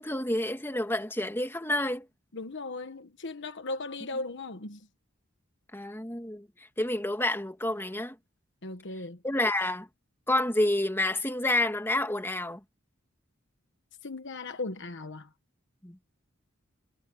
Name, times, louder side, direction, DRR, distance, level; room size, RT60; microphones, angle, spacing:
voice 1, 0.0-2.1 5.7-6.5 6.8-8.2 9.2-9.9 10.3-12.6 15.8-16.0, left 1 dB, 10° left, 2.5 m, -29 dB
voice 2, 2.3-4.8 8.6-9.2 14.0-15.3, left 3 dB, 60° left, 1.3 m, -37 dB
head